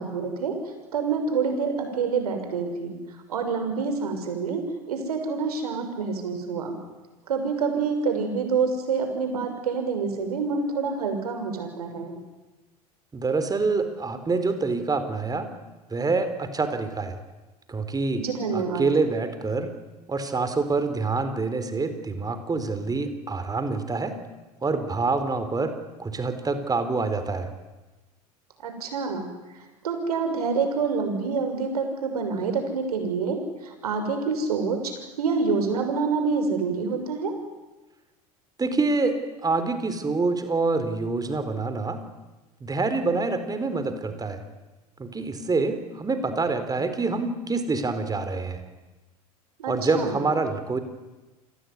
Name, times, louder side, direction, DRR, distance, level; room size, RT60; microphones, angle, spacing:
voice 1, 0.0-4.6 4.9-6.8 7.3-12.2 18.2-18.9 28.6-37.3 49.6-50.2, right 5 dB, 80° right, 6 dB, 6.4 m, -27 dB
voice 2, 13.1-15.5 15.9-17.2 17.7-18.2 18.5-19.7 20.1-24.2 24.6-25.7 26.0-27.5 38.6-42.0 42.6-44.4 45.0-48.6 49.7-50.8, right 3 dB, 20° right, 9 dB, 4.2 m, -26 dB
29.0 x 19.5 x 9.7 m, 1.2 s
hypercardioid pair, 80°, 19 cm